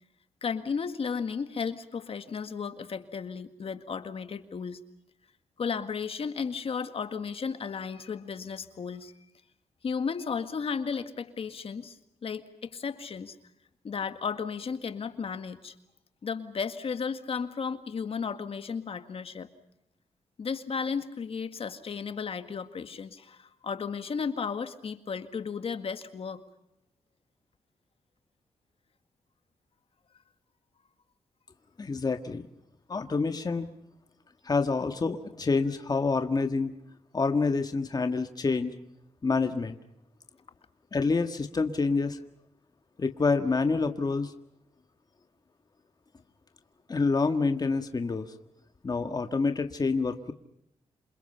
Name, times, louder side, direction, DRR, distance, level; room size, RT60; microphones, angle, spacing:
voice 1, 0.4-4.8 5.6-9.1 9.8-13.4 13.8-15.8 16.2-19.5 20.4-26.4, left 6 dB, 55° left, 9 dB, 1.9 m, -34 dB
voice 2, 31.8-32.4 32.9-33.7 34.4-36.7 37.1-38.7 39.2-39.8 40.9-42.2 43.0-44.3 46.9-48.3 48.8-50.3, left 4 dB, 35° left, 7 dB, 1.7 m, -27 dB
28.0 x 27.5 x 5.7 m, 0.80 s
cardioid pair, 90°, 12 cm